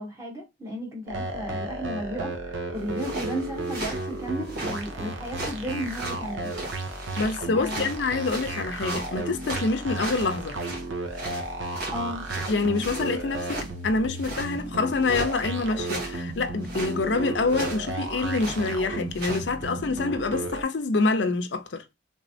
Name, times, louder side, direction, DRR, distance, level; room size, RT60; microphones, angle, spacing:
voice 1, 0.0-6.5 7.5-7.9 11.9-12.2, equal, 15° right, 1.2 m, -34 dB
sound 1, 1.1-20.6, right 2 dB, 85° right, 0.8 m, -34 dB
sound 2, 2.8-4.9 5.2-7.4 7.6-10.9 11.1-13.7 14.2-14.6 15.0-15.3 15.8-16.2 16.6-16.9 17.5-17.9 18.3-18.6 19.1-19.4, right 2 dB, 55° right, 1.5 m, -37 dB
voice 2, 7.2-10.6 12.5-21.8, left 3 dB, 65° left, 0.6 m, -26 dB
3.3 x 3.1 x 2.7 m
head